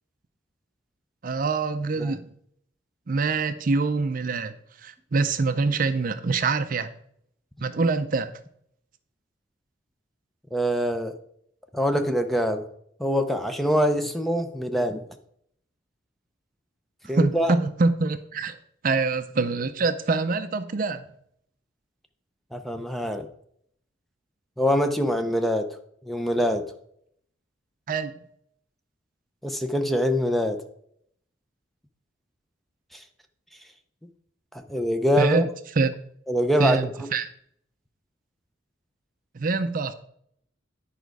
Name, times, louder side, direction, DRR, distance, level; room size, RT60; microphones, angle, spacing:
voice 1, 1.2-2.3 3.1-4.5 4.8-6.9 7.6-8.3 17.1-18.6 18.8-21.1 27.9-28.1 35.2-35.5 35.8-35.9 36.6-37.3 39.3-39.9, right 3 dB, 45° right, 0.5 m, -25 dB
voice 2, 10.5-11.1 11.7-12.6 13.0-15.0 17.1-17.5 22.5-23.3 24.6-25.7 26.0-26.6 29.4-30.6 32.9-33.0 34.5-35.5 36.3-36.8, equal, ahead, 0.6 m, -24 dB
10.5 x 5.0 x 4.7 m
head